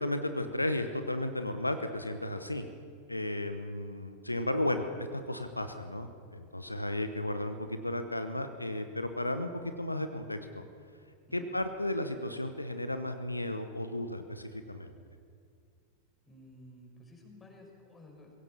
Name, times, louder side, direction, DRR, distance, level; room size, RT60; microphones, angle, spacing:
voice 1, 0.0-2.7 3.1-9.5 9.8-10.6 11.3-14.9, left 1 dB, 85° left, 9 dB, 1.0 m, -34 dB
voice 2, 16.3-18.3, left 1 dB, 15° left, 1 dB, 5.7 m, -53 dB
22.5 x 16.5 x 7.2 m, 2.2 s
figure-of-eight pair, 90°, 0 cm